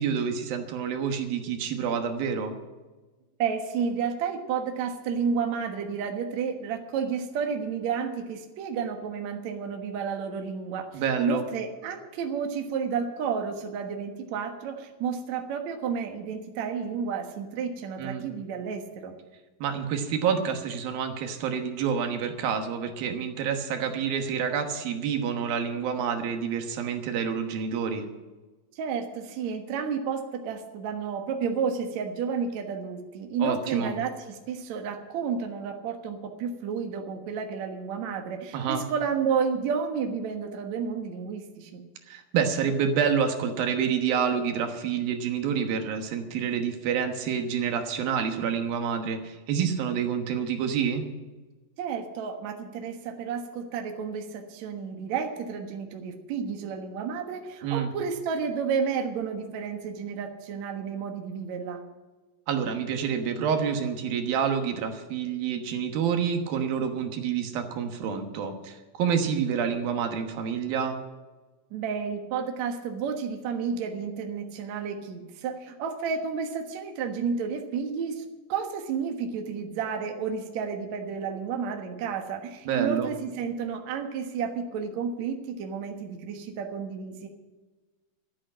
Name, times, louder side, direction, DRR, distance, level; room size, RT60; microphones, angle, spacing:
voice 1, 0.0-2.5 10.9-11.4 18.0-18.2 19.6-28.1 33.4-33.9 38.5-38.8 42.1-51.1 57.6-57.9 62.5-71.0 82.7-83.1, right 7 dB, 75° right, 5 dB, 3.1 m, -28 dB
voice 2, 3.4-19.1 28.8-41.8 51.8-61.8 71.7-87.3, right 6 dB, 60° right, 4 dB, 2.3 m, -31 dB
13.0 x 8.7 x 8.7 m, 1.2 s
omnidirectional pair, 4.3 m